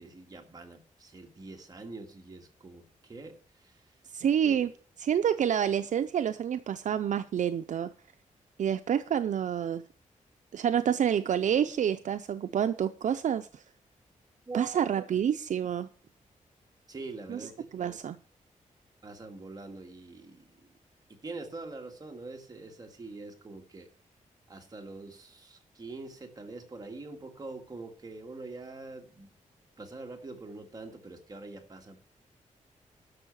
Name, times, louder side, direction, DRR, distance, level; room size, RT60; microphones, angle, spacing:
voice 1, 0.0-3.4 3.6-3.8 4.4-4.6 14.5-14.9 16.9-17.9 19.0-20.7 21.1-23.9 24.5-29.3 29.8-32.0, right 3 dB, 30° right, 2 dB, 2.1 m, -44 dB
voice 2, 4.1-4.7 5.0-7.9 8.6-9.8 10.5-13.6 14.5-15.9 17.3-18.2, right 9 dB, 65° right, 10 dB, 0.5 m, -28 dB
12.0 x 6.5 x 7.0 m, 0.42 s
wide cardioid pair, 150°, 13 cm